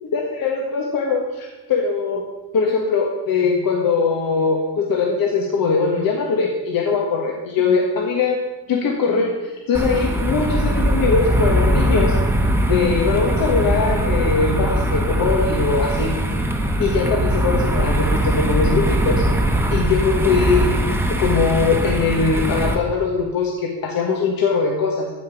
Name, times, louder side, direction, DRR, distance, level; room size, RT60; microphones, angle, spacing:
voice 1, 0.0-2.2 2.5-8.4 8.7-12.2 12.6-16.1 16.8-19.3 19.7-20.7 21.2-25.1, left 4 dB, 65° left, 0 dB, 1.6 m, -21 dB
sound 1, 9.7-22.8, right 1 dB, 5° right, 1.0 m, -20 dB
14.5 x 5.3 x 7.2 m, 1.1 s
wide cardioid pair, 175°, 37 cm